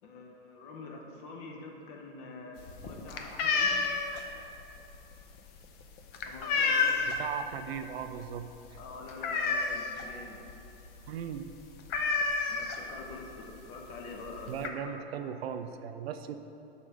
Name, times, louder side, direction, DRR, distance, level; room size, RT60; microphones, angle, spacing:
voice 1, 0.0-3.8 6.3-7.0 8.7-10.4 12.5-15.3, left 3 dB, 50° left, 1 dB, 1.1 m, -46 dB
sound 1, 2.6-7.3 7.7-8.0 8.3-8.4 8.8-10.1 10.5-10.6 10.9-11.1 11.4-11.5 11.9-13.1 13.9-14.0 14.3-14.7, left 4 dB, 30° left, 0.5 m, -30 dB
voice 2, 7.1-8.8 11.1-11.5 14.5-16.3, right 8 dB, 70° right, 9 dB, 0.5 m, -38 dB
6.3 x 3.7 x 6.0 m, 2.8 s
hypercardioid pair, 115°, 32 cm